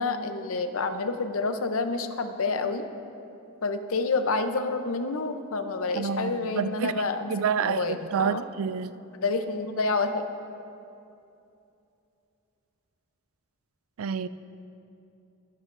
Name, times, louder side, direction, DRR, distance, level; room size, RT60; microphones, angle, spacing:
voice 1, 0.0-2.8 3.6-8.4 9.2-10.3, left 3 dB, 80° left, 8 dB, 0.7 m, -28 dB
voice 2, 6.0-7.0 7.3-8.9 14.0-14.3, right 6 dB, 80° right, 14 dB, 0.4 m, -28 dB
21.0 x 10.0 x 2.6 m, 2.7 s
head